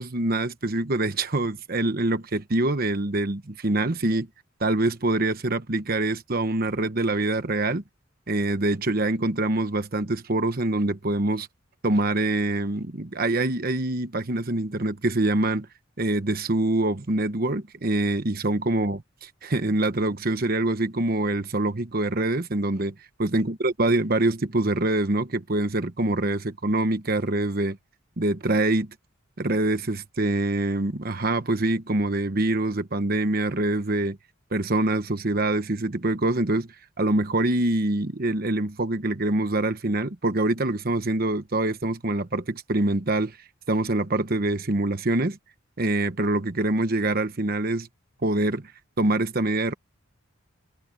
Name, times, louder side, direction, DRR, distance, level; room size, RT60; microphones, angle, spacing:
voice 1, 0.0-4.3 4.6-7.8 8.3-11.5 11.8-15.7 16.0-19.0 19.4-22.9 23.2-27.8 28.2-28.9 29.4-34.2 34.5-36.7 37.0-43.4 43.7-45.4 45.8-47.9 48.2-48.7 49.0-49.7, right 2 dB, 45° right, 1.1 m, -25 dB
head